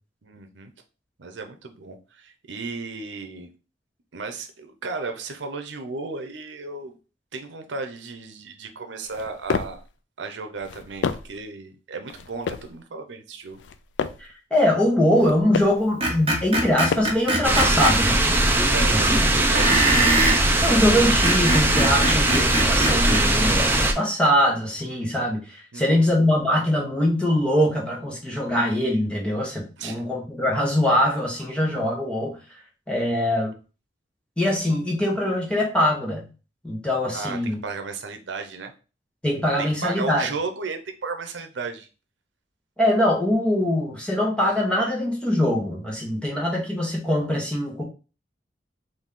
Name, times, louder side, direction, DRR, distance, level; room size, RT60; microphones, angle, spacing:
voice 1, 0.2-0.7 1.2-3.5 4.1-7.0 7.3-9.8 10.2-13.6 18.7-20.3 25.7-26.1 29.8-30.0 37.1-38.7 39.6-41.9, right 4 dB, 90° right, 6 dB, 0.7 m, -34 dB
sound 1, 9.0-9.9 10.5-11.4 12.1-12.8 13.5-14.3 15.0-15.9 16.5-17.3, left 5 dB, 90° left, 0.4 m, -31 dB
voice 2, 14.5-18.2 18.9-19.2 20.6-32.4 32.9-33.5 34.4-36.3 36.6-37.6 39.2-40.3 42.8-47.8, left 1 dB, 5° left, -2 dB, 1.2 m, -22 dB
Screech, 16.0-17.9 19.5-20.4 21.1-23.2, right 1 dB, 30° right, 1.0 m, -23 dB
sound 2, 17.4-23.9, right 1 dB, 10° right, 0.5 m, -20 dB
4.1 x 2.7 x 3.7 m, 0.33 s
head